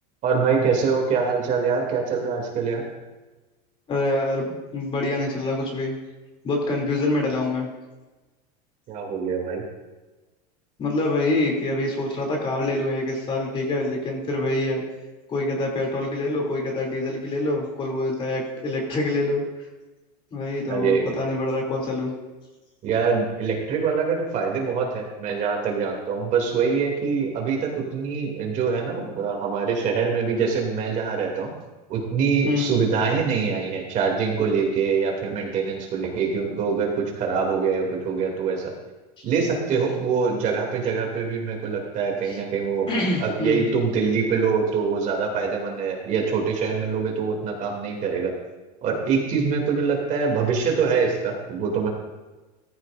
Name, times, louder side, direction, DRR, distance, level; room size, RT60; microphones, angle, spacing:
voice 1, 0.2-2.8 8.9-9.6 20.7-21.1 22.8-31.5 31.9-38.7 39.2-42.9 43.2-48.3 48.8-51.9, right 5 dB, 40° right, 0 dB, 2.7 m, -24 dB
voice 2, 3.9-6.0 6.4-7.7 10.8-14.8 15.3-19.4 20.3-22.1 32.4-32.7 39.2-39.3 42.3-42.4 42.9-43.7, left 2 dB, 25° left, -1 dB, 2.9 m, -25 dB
14.5 x 14.5 x 2.6 m, 1.2 s
supercardioid pair, 145°, 20 cm